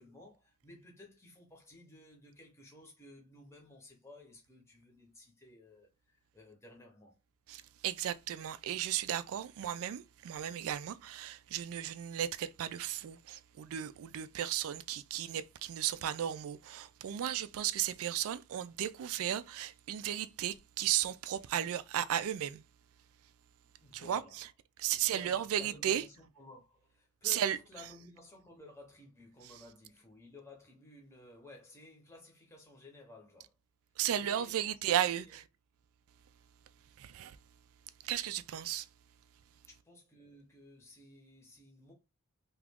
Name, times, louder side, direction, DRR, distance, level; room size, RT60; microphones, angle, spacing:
voice 1, 0.0-7.2 23.8-24.4 25.1-33.5 34.1-34.7 35.1-35.4 39.7-41.9, left 2 dB, 10° left, 0.8 m, -55 dB
voice 2, 7.5-22.6 23.9-24.5 24.8-26.0 27.2-27.6 34.0-35.4 37.0-37.4 38.0-38.9, right 10 dB, 65° right, 0.3 m, -35 dB
2.9 x 2.4 x 3.4 m
head